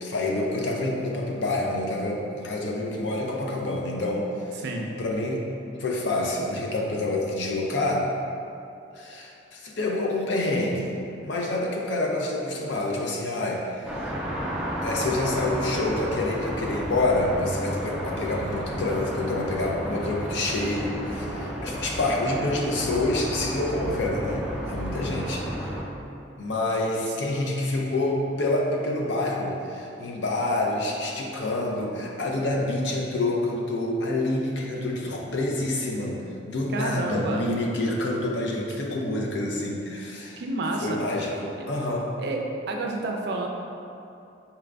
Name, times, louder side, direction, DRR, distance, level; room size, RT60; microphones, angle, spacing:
voice 1, 0.0-4.6 5.0-5.4 5.8-8.1 9.0-11.0 11.2-14.0 14.8-25.5 26.4-36.2 36.5-40.4 40.8-42.1, left 2 dB, 75° left, -1 dB, 0.5 m, -27 dB
voice 2, 4.6-4.9 36.7-37.4 38.8-39.0 40.4-41.0 42.2-42.4 42.7-43.5, right 2 dB, 65° right, 1 dB, 0.4 m, -29 dB
sound 1, 13.9-25.8, equal, 5° right, 0.4 m, -32 dB
4.3 x 2.4 x 3.3 m, 2.7 s
head